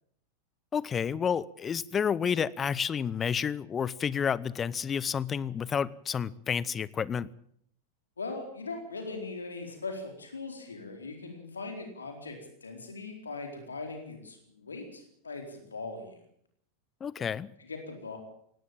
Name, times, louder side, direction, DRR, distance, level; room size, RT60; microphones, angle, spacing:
voice 1, 0.7-7.3 17.0-17.5, left 7 dB, 20° left, 22 dB, 0.7 m, -30 dB
voice 2, 8.2-16.1 17.2-17.3 17.7-18.2, left 3 dB, 75° left, 4 dB, 4.3 m, -40 dB
18.5 x 17.0 x 8.9 m, 0.68 s
figure-of-eight pair, 90°, 0 cm